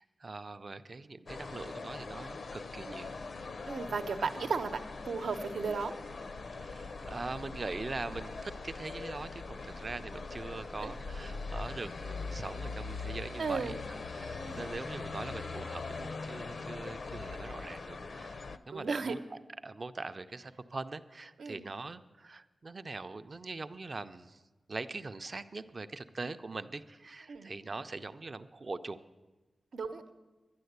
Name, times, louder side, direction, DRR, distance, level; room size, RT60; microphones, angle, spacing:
voice 1, 0.0-3.1 4.2-4.3 6.5-18.4 18.7-24.4 24.7-29.0, right 3 dB, 35° right, 11 dB, 0.5 m, -42 dB
sound 1, 1.3-18.6, left 3 dB, 50° left, 0.5 m, -41 dB
voice 2, 3.7-4.8 5.1-5.9 10.8-10.9 13.4-13.8 14.4-14.7 18.7-19.1 21.4-21.7 27.3-27.5 29.7-30.0, right 4 dB, 80° right, 8 dB, 0.8 m, -35 dB
11.5 x 10.0 x 8.0 m, 1.2 s
wide cardioid pair, 175°, 0 cm